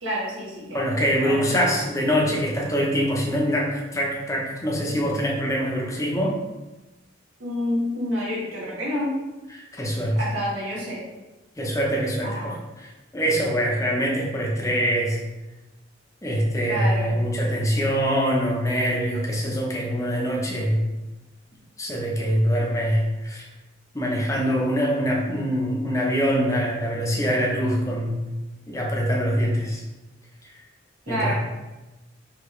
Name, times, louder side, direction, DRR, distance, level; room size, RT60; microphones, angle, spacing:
voice 1, 0.0-0.8 1.2-1.7 7.4-9.2 10.1-11.0 12.2-12.5 16.6-17.1 31.1-31.3, equal, 80° right, -5 dB, 1.4 m, -28 dB
voice 2, 0.7-6.4 9.5-10.2 11.6-12.6 13.1-15.2 16.2-20.8 21.8-23.4 23.9-28.2 28.7-29.8 31.1-31.3, equal, 15° left, -2 dB, 0.7 m, -24 dB
4.8 x 3.0 x 3.1 m, 1.1 s
head